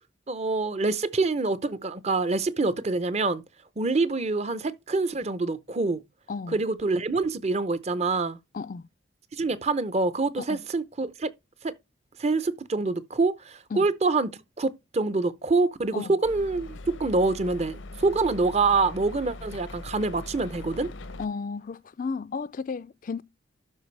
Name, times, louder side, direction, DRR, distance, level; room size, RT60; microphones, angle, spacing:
voice 1, 0.3-3.4 3.8-6.0 6.5-8.4 9.3-11.3 11.6-11.7 12.2-20.9, right 3 dB, 35° right, 0.7 m, -26 dB
sound 1, 16.2-21.3, left 2 dB, 85° left, 0.8 m, -41 dB
voice 2, 21.2-23.2, left 5 dB, 45° left, 0.4 m, -33 dB
12.0 x 4.9 x 3.3 m
head